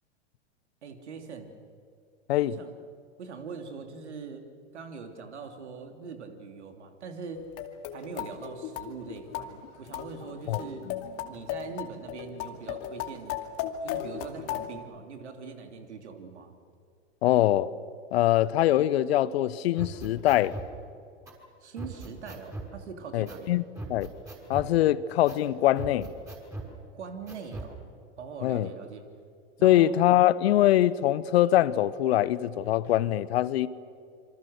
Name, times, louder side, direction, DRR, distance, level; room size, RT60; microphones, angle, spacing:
voice 1, 0.8-1.5 2.4-2.7 3.2-4.5 4.7-7.4 7.9-10.9 11.2-13.4 13.8-16.5 21.6-23.6 26.9-27.8 28.2-29.1 29.6-29.9, right 5 dB, 80° right, 3.3 m, -42 dB
sound 1, 7.3-14.8, left 10 dB, 45° left, 2.5 m, -36 dB
voice 2, 17.2-17.7 18.1-20.5 23.1-23.6 23.9-24.1 24.5-26.1 28.4-28.7 29.6-33.7, left 13 dB, 65° left, 1.1 m, -23 dB
sound 2, 19.8-20.7 21.3-21.4 21.8-22.7 23.3-23.5 23.8-24.7 25.3-25.4 25.8-26.7 27.3-27.7, right 2 dB, 10° right, 6.3 m, -39 dB
27.5 x 24.5 x 6.6 m
hypercardioid pair, 100°, 34 cm